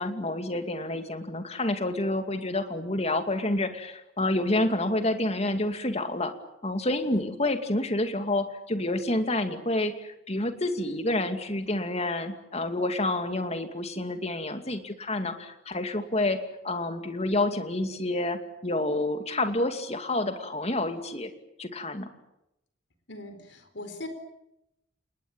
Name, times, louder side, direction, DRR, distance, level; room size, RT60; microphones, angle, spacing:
voice 1, 0.0-6.3 6.6-16.4 16.6-21.3 21.6-22.1, left 2 dB, 35° left, 7 dB, 2.4 m, -28 dB
voice 2, 23.1-24.1, left 2 dB, 65° left, 9 dB, 4.5 m, -40 dB
29.5 x 20.0 x 9.1 m, 0.85 s
head